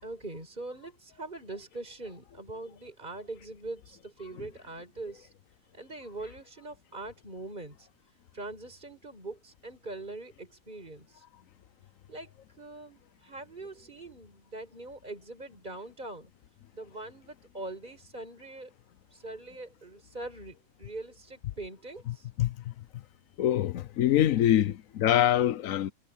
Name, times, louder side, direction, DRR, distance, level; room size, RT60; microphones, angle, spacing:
voice 1, 0.0-5.3 5.7-7.9 8.3-11.2 12.1-16.3 16.7-18.7 19.1-22.3, right 2 dB, 35° right, 5.0 m, -42 dB
voice 2, 22.1-22.5 23.4-25.9, left 11 dB, 70° left, 1.1 m, -25 dB
omnidirectional pair, 1.5 m